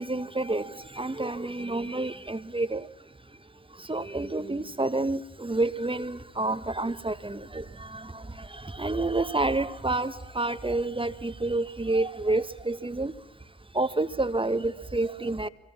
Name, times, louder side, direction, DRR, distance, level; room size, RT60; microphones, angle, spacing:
voice 1, 0.0-15.5, right 2 dB, 15° right, 11 dB, 1.4 m, -29 dB
24.5 x 24.0 x 7.4 m, 0.91 s
hypercardioid pair, 40°, 30 cm